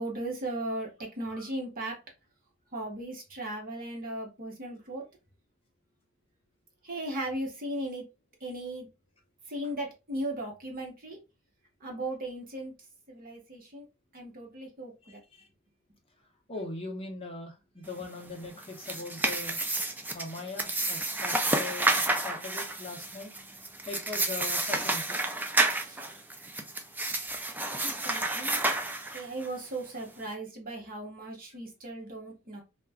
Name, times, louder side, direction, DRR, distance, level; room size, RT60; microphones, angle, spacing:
voice 1, 0.0-2.0 2.7-5.0 6.8-8.1 8.4-8.9 9.5-11.2 11.8-12.7 13.1-13.9 14.1-15.2 25.8-26.0 27.8-28.6 29.1-32.6, right 1 dB, 45° right, 0 dB, 0.9 m, -37 dB
voice 2, 15.0-15.4 16.5-19.6 20.1-23.3 23.9-25.2, left 3 dB, 25° left, 1 dB, 0.7 m, -40 dB
sound 1, 18.6-29.5, right 2 dB, 10° right, 0.3 m, -30 dB
2.3 x 2.1 x 3.3 m, 0.26 s
head